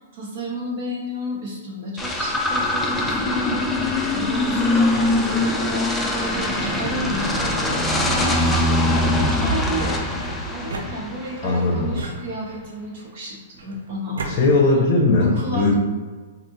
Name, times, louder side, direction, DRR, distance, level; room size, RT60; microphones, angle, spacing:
voice 1, 0.0-10.0 10.5-14.6 15.2-15.7, equal, 55° right, -4 dB, 1.2 m, -32 dB
sound 1, 2.0-11.5, left 2 dB, 10° left, 0.4 m, -22 dB
sound 2, 8.2-9.2 10.2-11.4 11.9-12.8 13.6-14.4, right 3 dB, 85° right, 0.5 m, -35 dB
voice 2, 11.4-11.9 14.3-15.7, left 2 dB, 45° left, -2 dB, 0.7 m, -18 dB
3.5 x 2.4 x 2.7 m, 1.4 s
hypercardioid pair, 130°, 0 cm